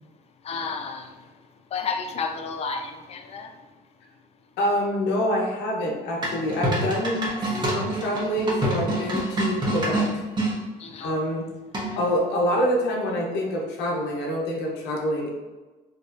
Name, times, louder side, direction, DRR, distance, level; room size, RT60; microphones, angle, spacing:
voice 1, 0.4-1.1 1.7-3.5 10.8-11.1, left 5 dB, 40° left, 6 dB, 0.4 m, -31 dB
voice 2, 4.6-7.2 7.7-10.2 11.0-11.5 12.0-15.3, equal, 85° left, -1 dB, 0.8 m, -26 dB
sound 1, 6.2-10.5 11.7-12.2, right 1 dB, 25° right, 0.9 m, -26 dB
4.4 x 2.3 x 2.5 m, 1.2 s
cardioid pair, 110°, 17 cm